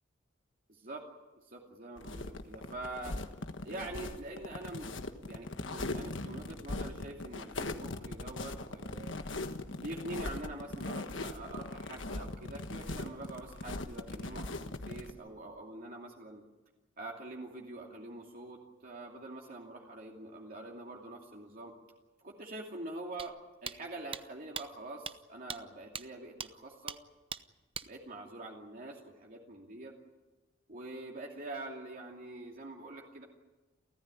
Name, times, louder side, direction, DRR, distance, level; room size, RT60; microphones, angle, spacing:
voice 1, 0.7-1.0 1.4-3.2 3.6-5.0 5.3-9.2 9.8-16.4 17.0-21.7 22.2-23.4 23.6-27.0 27.8-29.9 30.7-33.2, right 2 dB, 50° right, -1 dB, 2.7 m, -45 dB
sound 1, 2.0-15.1, left 2 dB, 70° left, 1.5 m, -40 dB
sound 2, 23.2-23.3 23.7-23.8 24.1-24.2 24.6-24.7 25.1-25.2 25.5-25.6 26.0-26.1 26.4-26.5 26.9-27.0 27.3-27.4 27.7-27.9, right 7 dB, 30° right, 0.7 m, -39 dB
30.0 x 14.0 x 9.8 m, 1.2 s
head